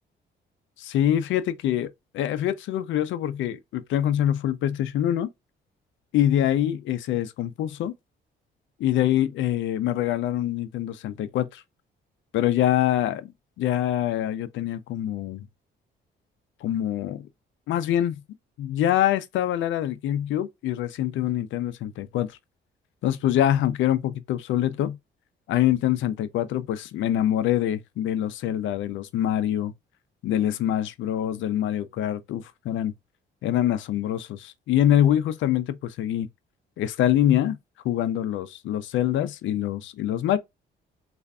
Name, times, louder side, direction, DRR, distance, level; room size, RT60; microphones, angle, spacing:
voice 1, 0.8-5.3 6.1-7.9 8.8-11.6 12.3-13.3 13.6-15.5 16.6-17.3 17.7-18.2 18.6-22.4 23.0-25.0 25.5-29.7 30.2-32.9 33.4-36.3 36.8-37.6 37.8-40.4, left 11 dB, 75° left, 0.5 m, -25 dB
3.4 x 2.5 x 2.2 m
cardioid pair, 90°, 20 cm